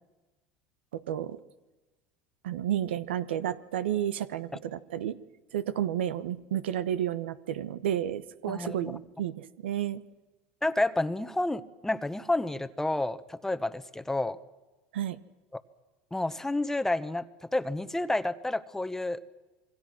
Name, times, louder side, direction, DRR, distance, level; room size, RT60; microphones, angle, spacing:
voice 1, 0.9-1.4 2.4-5.2 5.5-10.0 14.9-15.2, right 10 dB, 90° right, 14 dB, 1.0 m, -31 dB
voice 2, 8.5-8.9 10.6-14.4 16.1-19.2, left 2 dB, 5° left, 12 dB, 1.1 m, -30 dB
27.0 x 22.5 x 6.2 m, 1.1 s
supercardioid pair, 100°, 6 cm